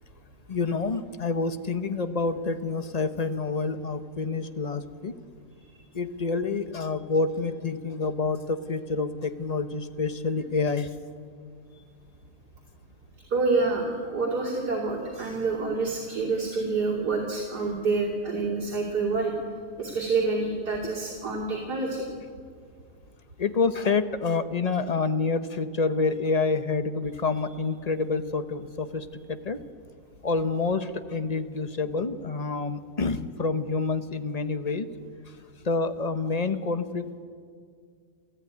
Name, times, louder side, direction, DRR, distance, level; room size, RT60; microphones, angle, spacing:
voice 1, 0.5-5.2 5.9-10.9 23.4-29.6 30.2-34.9 35.6-37.1, left 4 dB, 30° left, 10 dB, 0.9 m, -28 dB
voice 2, 13.3-19.3 19.8-22.1, right 3 dB, 80° right, -4 dB, 3.5 m, -27 dB
27.5 x 14.5 x 9.6 m, 2.1 s
omnidirectional pair, 1.7 m